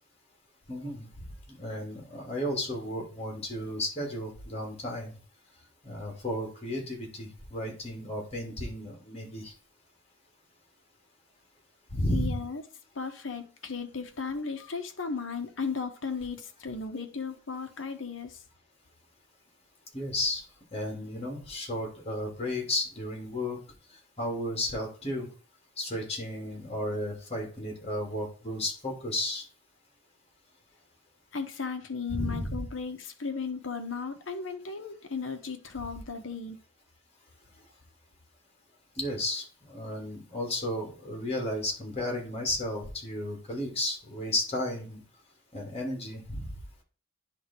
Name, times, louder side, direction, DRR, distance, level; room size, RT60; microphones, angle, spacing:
voice 1, 0.7-1.1 1.5-5.2 5.8-9.5 11.9-12.4 19.9-20.4 20.7-23.6 24.2-25.3 25.8-29.4 32.1-32.6 39.0-45.0 45.5-46.6, left 1 dB, 30° left, 3.0 m, -33 dB
voice 2, 12.1-12.6 12.9-18.4 31.3-36.6, left 5 dB, 70° left, 1.3 m, -35 dB
10.0 x 3.6 x 4.6 m
head